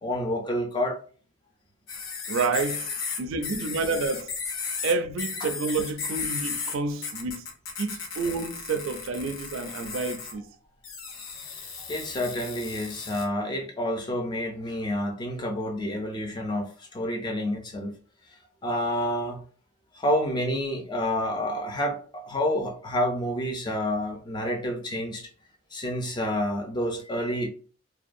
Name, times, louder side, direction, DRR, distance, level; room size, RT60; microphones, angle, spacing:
voice 1, 0.0-1.0 5.4-5.5 11.9-17.9 18.6-19.4 19.9-25.3 25.7-27.5, equal, 20° left, 0.4 m, -29 dB
sound 1, 1.9-6.8 7.0-10.3 10.8-13.2, left 5 dB, 80° left, 0.6 m, -35 dB
voice 2, 2.3-2.9 3.2-4.3 4.8-7.4 7.8-10.4, right 4 dB, 70° right, 0.4 m, -29 dB
2.5 x 2.2 x 2.5 m
head